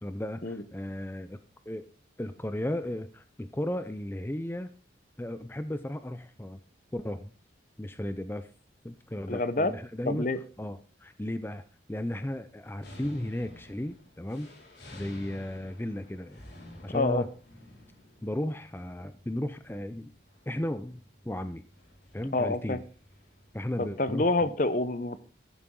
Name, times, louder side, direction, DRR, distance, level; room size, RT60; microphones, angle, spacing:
voice 1, 0.0-1.4 1.7-1.9 2.2-4.7 5.2-6.6 6.9-7.3 7.8-8.5 8.8-10.3 10.6-11.6 11.9-14.5 14.9-16.4 16.8-17.3 18.2-20.1 20.5-21.0 21.2-21.6 22.1-22.8 23.5-24.6, left 1 dB, 10° left, 11 dB, 0.5 m, -35 dB
voice 2, 9.3-9.7 10.1-10.4 16.9-17.2 22.3-22.8 23.8-25.2, left 2 dB, 45° left, 13 dB, 0.9 m, -27 dB
sound 1, 12.8-23.6, left 1 dB, 65° left, 4.8 m, -52 dB
14.5 x 11.5 x 3.8 m, 0.37 s
head